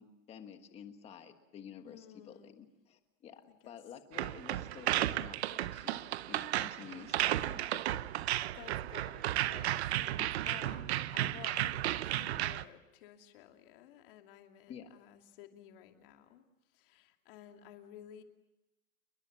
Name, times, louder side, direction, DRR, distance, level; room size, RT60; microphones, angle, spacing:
voice 1, 0.0-8.0 10.2-10.4 14.7-14.9, left 8 dB, 15° left, 8 dB, 1.5 m, -51 dB
voice 2, 1.8-2.7 3.5-3.8 8.4-16.4 16.7-18.2, left 11 dB, 40° left, 5 dB, 2.7 m, -54 dB
sound 1, 4.1-12.6, right 14 dB, 50° right, 0.9 m, -34 dB
29.5 x 22.0 x 7.2 m, 0.99 s
supercardioid pair, 175°, 41 cm